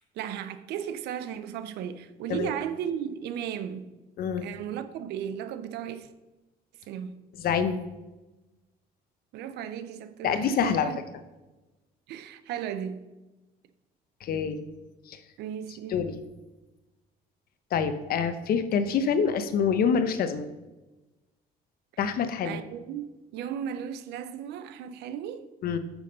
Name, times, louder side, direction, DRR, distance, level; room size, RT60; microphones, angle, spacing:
voice 1, 0.1-4.0 4.4-6.1 6.9-7.2 9.3-11.0 12.1-13.1 15.4-16.1 22.4-25.5, right 9 dB, 85° right, 0.7 m, -35 dB
voice 2, 4.2-4.5 7.4-7.8 10.2-10.9 14.2-14.6 15.1-15.2 15.9-16.2 17.7-20.5 22.0-22.6 25.6-25.8, left 6 dB, 60° left, 0.9 m, -26 dB
8.6 x 6.3 x 5.3 m
cardioid pair, 110°, 17 cm